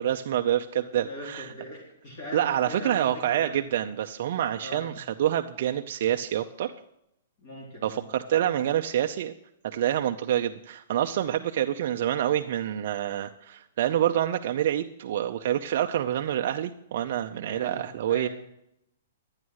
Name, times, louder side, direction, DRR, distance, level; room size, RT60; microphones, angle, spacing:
voice 1, 0.0-1.5 2.3-6.7 7.8-9.3 9.6-18.3, right 11 dB, 45° right, 5 dB, 0.6 m, -27 dB
voice 2, 0.8-3.6 4.6-4.9 7.4-8.1 17.5-18.3, left 1 dB, 35° left, -3 dB, 4.5 m, -41 dB
12.5 x 9.7 x 6.4 m, 0.80 s
hypercardioid pair, 175°, 0 cm